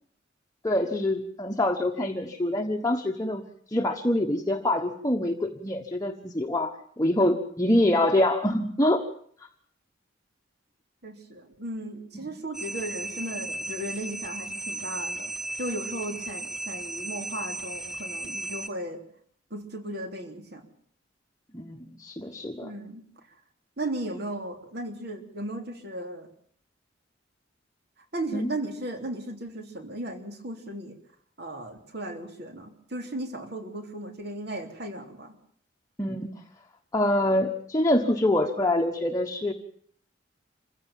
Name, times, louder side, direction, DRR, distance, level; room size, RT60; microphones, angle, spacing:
voice 1, 0.6-3.4 3.7-9.0 21.5-22.7 28.3-28.5 36.0-36.3 36.9-39.5, left 1 dB, 15° left, 2 dB, 1.2 m, -25 dB
voice 2, 11.0-15.3 15.6-19.0 19.5-20.7 22.6-23.0 23.8-26.3 28.1-31.0 31.4-35.3, right 1 dB, 55° right, 5 dB, 3.5 m, -36 dB
sound 1, 12.5-18.7, right 2 dB, 5° right, 1.1 m, -35 dB
25.5 x 16.0 x 7.4 m, 0.62 s
head